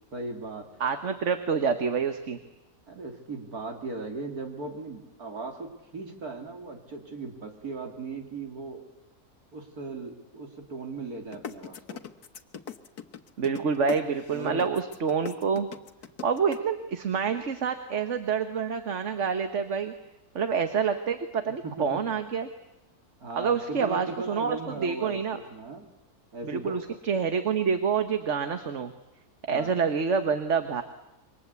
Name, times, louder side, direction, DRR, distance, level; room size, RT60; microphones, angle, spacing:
voice 1, 0.1-0.7 2.9-8.8 9.5-12.0 14.3-14.7 21.6-22.0 23.2-25.9 26.3-26.8 29.5-29.8, right 3 dB, 75° right, 3 dB, 3.5 m, -38 dB
voice 2, 0.8-2.4 13.4-15.7 16.2-19.9 20.3-22.5 23.4-25.4 26.4-28.9 29.5-30.8, right 6 dB, 55° right, 8 dB, 1.5 m, -27 dB
sound 1, 11.3-16.6, left 7 dB, 85° left, 1.7 m, -39 dB
27.5 x 24.0 x 8.2 m, 0.96 s
omnidirectional pair, 1.6 m